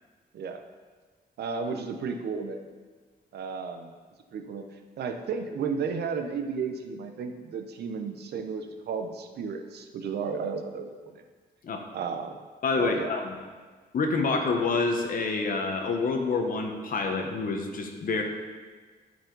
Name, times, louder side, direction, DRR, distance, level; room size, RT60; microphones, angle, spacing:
voice 1, 1.4-2.6 3.3-3.9 4.3-4.6 5.0-11.2 11.9-12.4 12.8-13.1, right 5 dB, 85° right, 6 dB, 0.8 m, -33 dB
voice 2, 12.6-13.4 13.9-18.2, left 4 dB, 60° left, 4 dB, 1.1 m, -27 dB
13.0 x 4.8 x 4.0 m, 1.4 s
wide cardioid pair, 155°, 17 cm